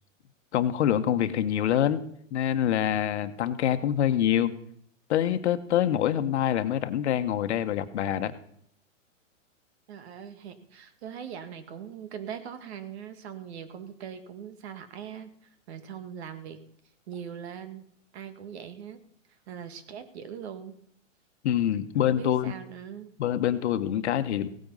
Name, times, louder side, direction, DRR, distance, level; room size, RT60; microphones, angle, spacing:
voice 1, 0.5-2.0 2.3-4.5 5.1-8.3 21.4-22.5 23.2-24.5, left 10 dB, 60° left, 10 dB, 1.4 m, -25 dB
voice 2, 9.9-16.6 17.1-17.8 18.1-19.0 19.5-20.8 22.0-23.1, right 8 dB, 55° right, 10 dB, 2.1 m, -41 dB
17.0 x 9.1 x 5.6 m, 0.66 s
hypercardioid pair, 145°, 39 cm